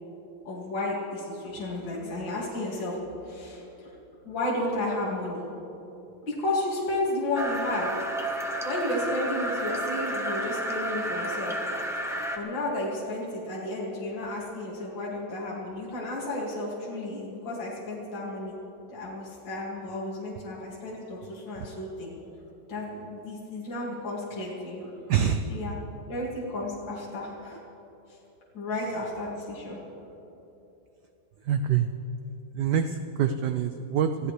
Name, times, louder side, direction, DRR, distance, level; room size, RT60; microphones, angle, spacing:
voice 1, 0.4-3.9 4.2-5.4 6.3-7.9 8.6-11.6 12.3-18.6 18.9-22.1 22.7-24.9 25.5-25.8 26.1-27.6 28.1-28.2 28.5-29.8, left 1 dB, 55° left, -6 dB, 3.0 m, -32 dB
sound 1, 7.3-12.4, right 1 dB, 5° right, 0.4 m, -31 dB
voice 2, 25.1-25.5 31.4-31.9 32.5-34.3, right 8 dB, 75° right, 8 dB, 0.9 m, -26 dB
27.5 x 16.0 x 3.3 m, 2.9 s
omnidirectional pair, 2.4 m